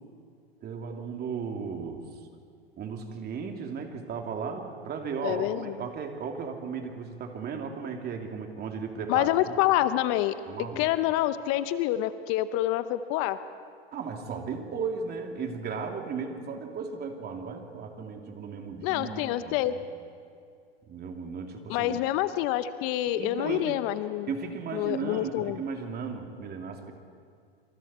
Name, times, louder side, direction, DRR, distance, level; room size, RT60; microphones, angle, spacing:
voice 1, 0.6-2.0 2.8-9.6 10.5-10.9 13.9-19.8 20.9-22.0 23.2-23.8 24.3-26.9, right 5 dB, 30° right, 3 dB, 3.2 m, -35 dB
voice 2, 5.2-5.7 9.1-10.3 10.6-13.4 18.8-19.7 21.7-24.3 24.7-25.6, left 14 dB, 45° left, 13 dB, 1.0 m, -27 dB
27.0 x 26.5 x 4.5 m, 2.3 s
hypercardioid pair, 100°, 31 cm